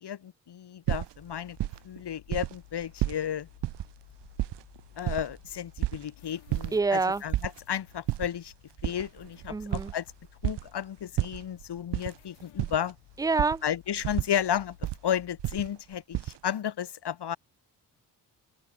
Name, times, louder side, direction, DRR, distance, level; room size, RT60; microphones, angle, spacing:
voice 1, 0.0-1.6 1.8-3.5 5.0-8.5 8.8-10.1 10.4-13.0 13.6-14.8 15.0-17.4, left 9 dB, 60° left, 1.9 m, -33 dB
sound 1, 0.9-2.0 2.3-3.2 3.6-3.8 4.2-6.1 6.5-6.7 7.0-7.6 8.0-8.3 8.8-10.7 11.2-12.1 12.4-12.9 13.4-13.6 14.0-15.0 15.4-16.4, right 15 dB, 65° right, 0.7 m, -31 dB
sound 2, 1.2-15.6, left 19 dB, 90° left, 6.5 m, -56 dB
voice 2, 6.7-7.2 9.5-9.9 13.2-13.6, right 4 dB, 10° right, 0.4 m, -26 dB
open air
supercardioid pair, 45°, 45 cm